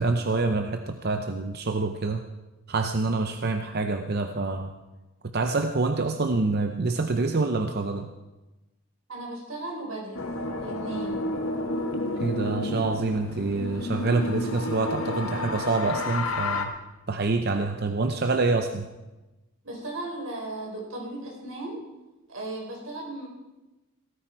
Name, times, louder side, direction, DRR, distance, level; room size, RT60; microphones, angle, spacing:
voice 1, 0.0-2.2 2.7-4.7 5.2-8.1 12.2-16.7 17.1-18.9, right 3 dB, 50° right, 7 dB, 0.7 m, -26 dB
voice 2, 9.1-10.2 10.6-11.2 19.6-21.8 22.3-23.3, right 2 dB, 85° right, -1 dB, 4.4 m, -36 dB
sound 1, 10.1-16.6, left 2 dB, 85° left, 1.5 m, -30 dB
17.0 x 14.0 x 4.6 m, 1.1 s
head